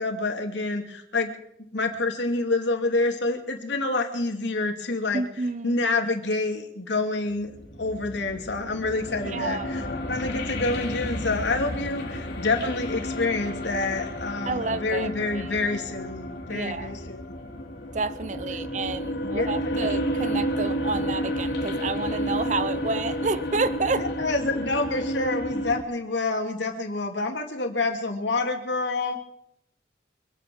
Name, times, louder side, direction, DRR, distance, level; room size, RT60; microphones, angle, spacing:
voice 1, 0.0-1.3 1.7-5.2 5.6-7.5 7.8-17.2 19.0-19.9 23.9-29.2, left 3 dB, 80° left, 2.6 m, -27 dB
voice 2, 5.1-5.8 9.3-9.9 14.5-15.7 16.5-16.9 17.9-24.1, right 3 dB, 40° right, 0.6 m, -30 dB
sound 1, 7.3-25.8, equal, 65° left, 2.9 m, -31 dB
25.0 x 8.9 x 6.3 m
head